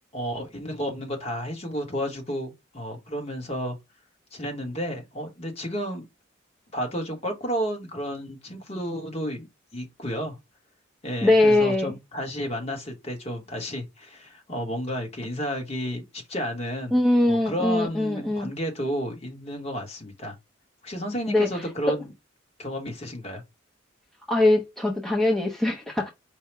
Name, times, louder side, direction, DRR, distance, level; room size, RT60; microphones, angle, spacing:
voice 1, 0.1-3.8 4.3-6.1 6.7-9.5 9.7-10.4 11.0-17.0 17.2-20.3 20.8-22.1 22.6-23.4, equal, 35° left, 1.1 m, -32 dB
voice 2, 11.2-11.9 16.9-18.5 21.3-21.6 24.3-26.1, left 2 dB, ahead, 0.5 m, -22 dB
4.6 x 2.1 x 4.5 m
head